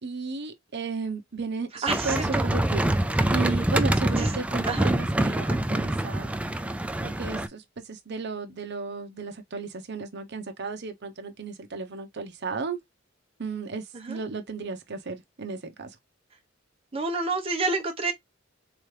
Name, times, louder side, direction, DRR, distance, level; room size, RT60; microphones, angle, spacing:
voice 1, 0.0-2.9 3.3-6.3 7.0-12.8 13.4-16.0, right 4 dB, 60° right, 0.9 m, -34 dB
voice 2, 1.8-2.4 4.2-4.3 4.6-4.9 14.0-14.2 16.9-18.1, right 3 dB, 30° right, 1.0 m, -28 dB
sound 1, 1.9-7.5, right 1 dB, 5° right, 0.3 m, -25 dB
3.8 x 3.0 x 3.3 m
head